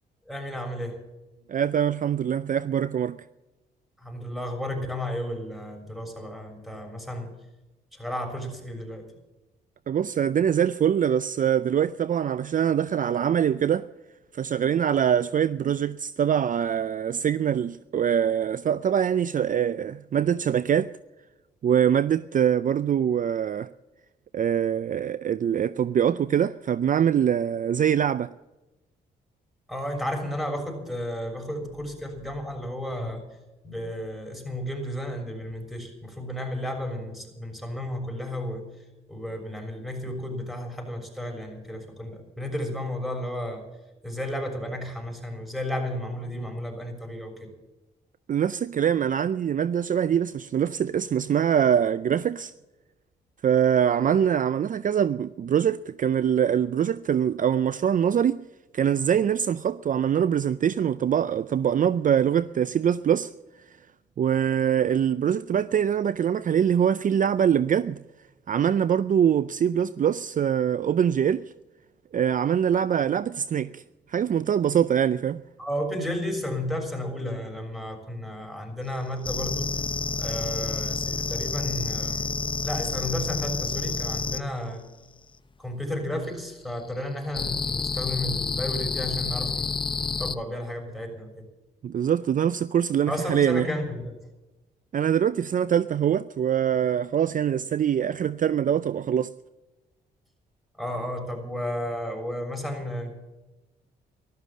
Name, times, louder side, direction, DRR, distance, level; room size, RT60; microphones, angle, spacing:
voice 1, 0.2-1.0 1.3-1.5 4.0-7.3 7.9-9.1 29.7-33.2 33.6-38.6 39.1-43.6 44.0-47.5 75.6-79.7 80.2-82.4 82.6-84.8 85.6-91.5 93.1-94.1 100.8-103.1, left 1 dB, ahead, 6.5 m, -33 dB
voice 2, 1.5-3.2 9.9-13.9 14.3-20.9 21.6-23.7 24.3-28.3 48.3-52.5 53.4-58.5 58.7-63.3 64.2-68.0 68.5-71.4 72.1-73.8 74.1-75.4 91.8-93.7 94.9-99.3, right 9 dB, 45° right, 0.5 m, -23 dB
sound 1, 79.2-84.4 87.3-90.4, left 4 dB, 25° left, 0.8 m, -29 dB
14.0 x 12.5 x 7.5 m
supercardioid pair, 60°, 18 cm